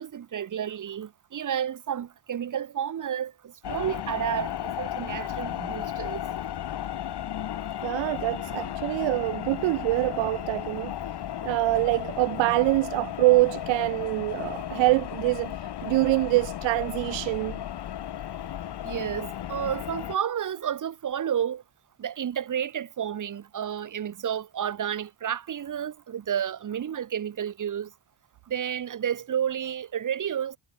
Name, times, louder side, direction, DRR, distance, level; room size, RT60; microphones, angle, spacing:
voice 1, 0.0-6.2 18.8-21.6 22.0-27.9 28.5-30.6, right 9 dB, 40° right, 1.8 m, -31 dB
sound 1, 3.6-20.2, left 11 dB, 55° left, 4.5 m, -34 dB
voice 2, 7.8-10.9 11.4-15.6 15.8-17.6, right 21 dB, 70° right, 0.6 m, -25 dB
cardioid pair, 120°, 46 cm